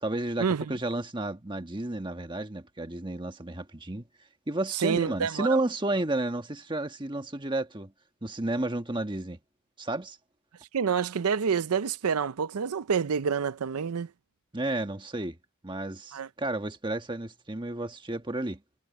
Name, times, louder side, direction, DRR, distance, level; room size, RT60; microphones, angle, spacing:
voice 1, 0.0-4.0 4.5-7.9 8.2-9.4 9.8-10.2 14.5-15.4 15.6-18.6, right 2 dB, 20° right, 1.3 m, -31 dB
voice 2, 4.7-5.5 10.7-14.1 16.1-16.3, right 6 dB, 85° right, 0.5 m, -27 dB
head